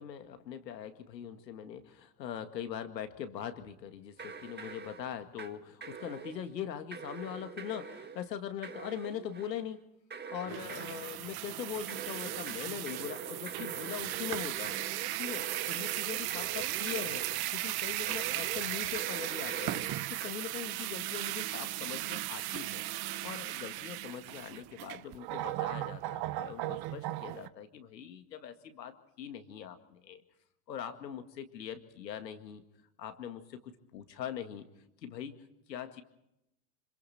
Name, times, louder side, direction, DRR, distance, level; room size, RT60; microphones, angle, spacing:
voice 1, 0.0-9.8 10.3-14.8 15.2-19.8 20.1-22.8 23.2-30.2 30.7-32.6 33.0-34.7 35.0-36.0, left 9 dB, 85° left, 8 dB, 2.1 m, -42 dB
sound 1, 4.2-5.6 5.8-6.5 6.9-8.3 8.6-9.7 10.1-11.3 11.9-17.6 18.1-20.3, right 5 dB, 20° right, 1.8 m, -44 dB
sound 2, 10.5-27.5, right 16 dB, 50° right, 1.0 m, -36 dB
26.5 x 26.0 x 4.3 m, 0.85 s
hypercardioid pair, 75°, 49 cm